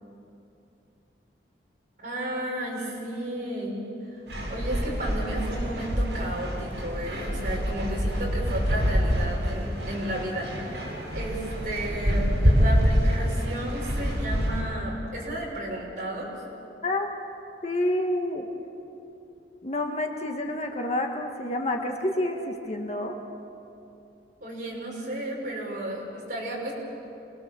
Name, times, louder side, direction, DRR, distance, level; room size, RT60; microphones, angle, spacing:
voice 1, 2.0-3.8 4.1-4.2 4.5-10.8 11.1-16.3 24.4-26.7, right 1 dB, 45° right, -3 dB, 6.4 m, -33 dB
sound 1, 4.3-14.6, equal, 65° right, 6.7 m, -26 dB
voice 2, 17.6-18.5 19.6-23.1, left 1 dB, 35° left, 2 dB, 1.6 m, -28 dB
27.0 x 21.5 x 7.0 m, 2.8 s
head